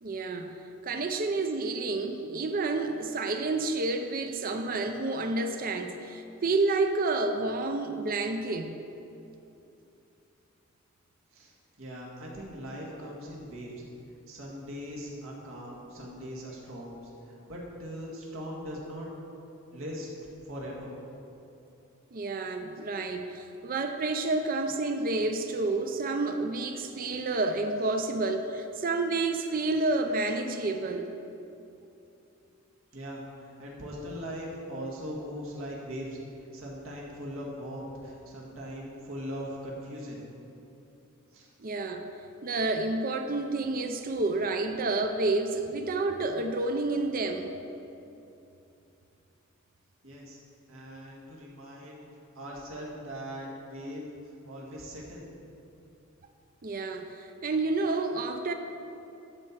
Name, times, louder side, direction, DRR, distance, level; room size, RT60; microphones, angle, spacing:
voice 1, 0.0-0.5 0.8-8.7 22.1-31.1 41.6-42.1 42.4-47.5 56.6-58.5, right 3 dB, 45° right, 6 dB, 0.5 m, -29 dB
voice 2, 11.8-13.8 14.3-19.1 19.7-20.1 20.4-20.9 32.9-36.2 36.5-40.2 41.3-41.5 50.0-50.4 50.7-52.1 52.4-54.0 54.5-55.2, equal, 75° right, -4 dB, 1.9 m, -40 dB
12.0 x 4.5 x 7.3 m, 2.8 s
head